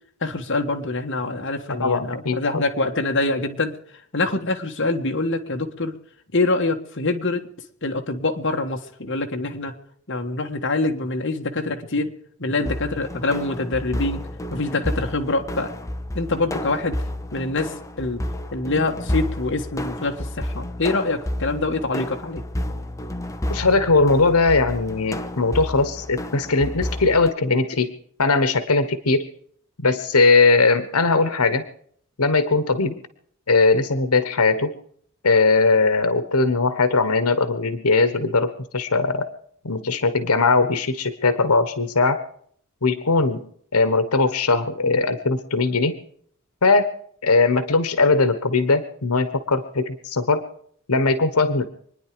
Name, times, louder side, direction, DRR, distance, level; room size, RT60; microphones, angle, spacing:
voice 1, 0.2-3.7 4.1-5.9 6.3-7.4 7.8-9.7 10.1-12.1 12.4-14.2 14.5-15.7 16.1-17.0 17.3-18.3 18.5-22.4, left 2 dB, 55° left, 3 dB, 1.7 m, -25 dB
voice 2, 1.7-2.6 23.5-27.9 28.2-29.3 29.8-31.6 32.2-33.0 33.5-34.7 35.2-39.3 39.6-42.2 42.8-43.5 43.7-46.0 46.6-46.9 47.2-50.4 50.9-51.6, left 3 dB, 90° left, 12 dB, 1.3 m, -19 dB
sound 1, 12.6-27.3, left 1 dB, 15° left, 0.8 m, -31 dB
25.5 x 10.0 x 5.0 m, 0.62 s
head